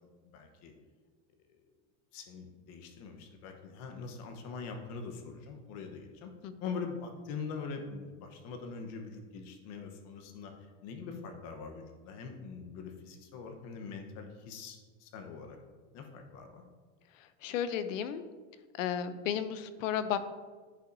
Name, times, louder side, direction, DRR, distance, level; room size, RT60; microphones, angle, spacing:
voice 1, 0.2-0.7 2.1-6.3 6.6-15.6 15.9-16.6, left 5 dB, 45° left, 4 dB, 1.0 m, -43 dB
voice 2, 17.4-18.2 18.8-20.2, left 9 dB, 85° left, 12 dB, 0.7 m, -33 dB
9.8 x 5.6 x 2.7 m, 1.4 s
supercardioid pair, 145°, 38 cm